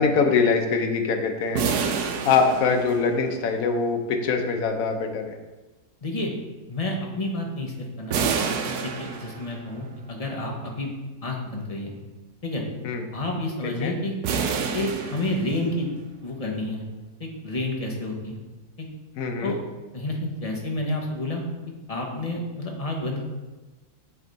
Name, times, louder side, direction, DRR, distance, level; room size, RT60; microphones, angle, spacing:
voice 1, 0.0-1.6 2.2-5.4 12.8-13.0 13.8-13.9 19.2-19.5, left 5 dB, 70° left, 4 dB, 1.2 m, -23 dB
sound 1, 1.5-3.4 8.1-9.7 14.2-15.9, right 6 dB, 80° right, 1.1 m, -28 dB
voice 2, 6.0-6.3 6.7-8.2 8.6-10.9 11.2-11.9 12.4-12.6 13.1-14.1 14.7-15.9 16.2-16.8 17.2-18.4 18.8-18.9 19.4-19.6 19.9-21.4 21.9-23.2, left 1 dB, 30° left, -1 dB, 0.9 m, -29 dB
7.9 x 3.5 x 4.0 m, 1.2 s
omnidirectional pair, 1.7 m